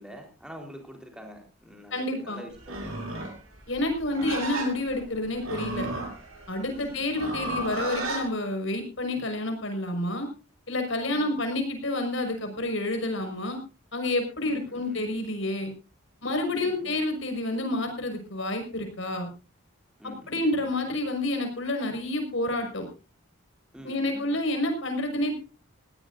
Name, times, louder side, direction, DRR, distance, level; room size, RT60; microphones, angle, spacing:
voice 1, 0.0-3.4 6.6-7.3 11.1-11.4 14.4-15.1 16.5-17.0 20.0-20.6 23.7-24.4, equal, 5° right, 3 dB, 4.1 m, -46 dB
voice 2, 1.9-2.4 3.7-5.9 6.5-10.3 10.7-13.6 13.9-15.7 16.2-19.3 20.3-22.9 23.8-25.4, left 1 dB, 60° left, 5 dB, 5.8 m, -29 dB
Livestock farm animals working animals, 2.6-8.3, right 2 dB, 80° right, 7.0 m, -34 dB
20.0 x 17.5 x 2.7 m, 0.33 s
head